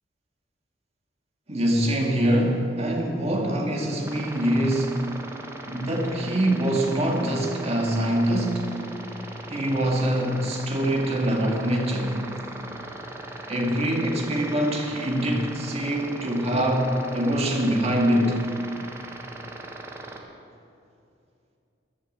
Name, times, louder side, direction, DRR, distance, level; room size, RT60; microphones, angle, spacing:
voice 1, 1.5-5.1 5.7-8.7 9.5-12.2 13.5-18.4, right 1 dB, 35° right, 0 dB, 2.1 m, -24 dB
sound 1, 4.0-20.2, right 2 dB, 15° right, 1.2 m, -39 dB
13.0 x 10.0 x 7.4 m, 2.5 s
head